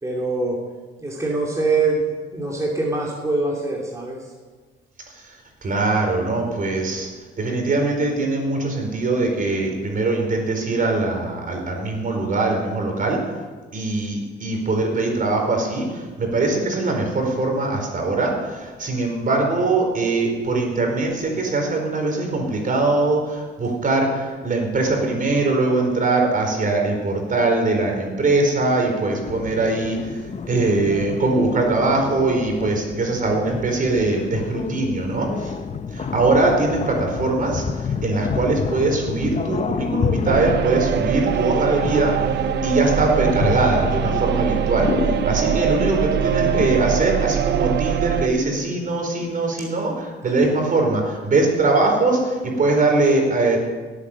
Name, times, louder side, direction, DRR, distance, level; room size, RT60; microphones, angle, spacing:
voice 1, 0.0-0.7 1.0-4.3 50.3-50.5, right 3 dB, 15° right, -2 dB, 2.8 m, -24 dB
voice 2, 5.6-7.1 7.4-13.2 13.7-30.2 30.5-35.5 35.9-53.6, right 3 dB, 45° right, 2 dB, 4.6 m, -22 dB
sound 1, 29.2-47.3, left 6 dB, 35° left, 0.8 m, -29 dB
sound 2, 40.3-48.3, right 10 dB, 60° right, 0.5 m, -23 dB
17.5 x 8.9 x 7.4 m, 1.4 s
cardioid pair, 90°, 20 cm